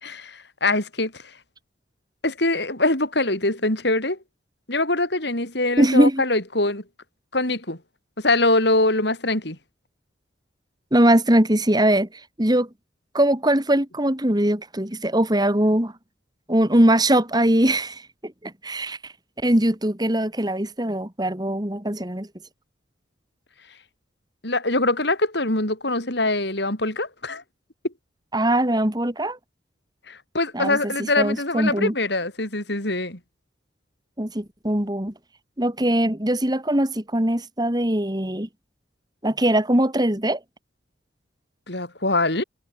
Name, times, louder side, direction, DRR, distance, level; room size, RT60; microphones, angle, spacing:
voice 1, 0.0-1.1 2.2-4.2 4.7-6.8 7.3-7.8 8.2-9.6 24.4-27.4 30.1-33.2 41.7-42.4, left 2 dB, 60° left, 5.5 m, -23 dB
voice 2, 5.8-6.2 10.9-12.1 12.4-12.7 13.1-15.9 16.5-19.0 19.4-22.3 28.3-29.4 30.5-31.9 34.2-35.1 35.6-38.5 39.2-40.4, right 1 dB, 20° right, 2.6 m, -21 dB
head